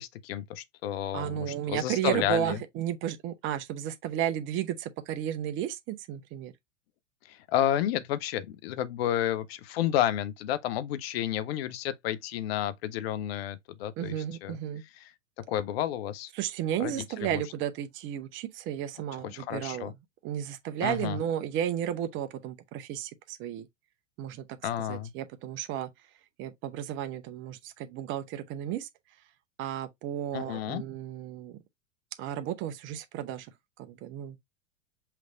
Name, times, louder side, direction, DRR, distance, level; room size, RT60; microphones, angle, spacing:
voice 1, 0.0-2.6 7.2-14.1 14.4-14.6 15.0-15.1 15.5-16.3 16.8-17.4 19.3-19.9 20.8-21.2 24.6-25.1 30.3-30.8, left 11 dB, 50° left, 0.8 m, -31 dB
voice 2, 1.1-6.5 14.0-14.8 16.3-19.9 20.2-23.7 24.2-24.4 24.9-25.9 26.4-28.9 29.6-31.6 32.2-33.5 33.8-34.4, right 11 dB, 30° right, 0.8 m, -33 dB
5.8 x 3.2 x 2.5 m
figure-of-eight pair, 90°, 38 cm